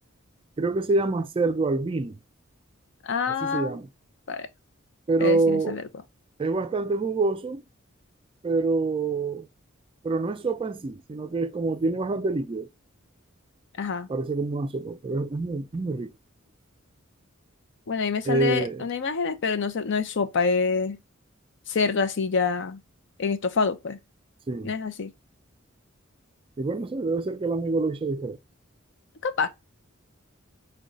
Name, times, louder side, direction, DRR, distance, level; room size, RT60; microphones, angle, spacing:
voice 1, 0.6-2.2 3.4-3.9 5.1-5.8 6.4-7.6 8.4-9.5 10.0-12.7 14.1-16.1 18.3-18.9 24.5-24.7 26.6-28.4, right 3 dB, 25° right, 0.3 m, -26 dB
voice 2, 3.0-3.8 4.3-4.5 5.2-5.8 13.8-14.1 17.9-21.0 21.7-22.8 23.2-24.0 24.6-25.1 29.2-29.5, left 5 dB, 60° left, 0.5 m, -26 dB
5.0 x 2.2 x 3.8 m
head